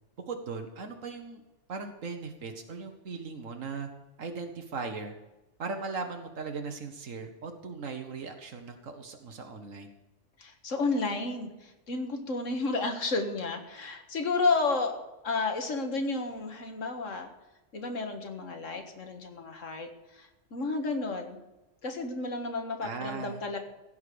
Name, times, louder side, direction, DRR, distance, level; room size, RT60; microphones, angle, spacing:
voice 1, 0.3-1.4 1.7-3.9 4.2-5.1 5.6-9.9 22.8-23.4, right 4 dB, 85° right, 5 dB, 1.7 m, -38 dB
voice 2, 10.4-17.3 17.7-21.4 21.8-23.6, left 3 dB, 80° left, 5 dB, 2.0 m, -32 dB
16.0 x 5.8 x 8.5 m, 1.0 s
omnidirectional pair, 1.3 m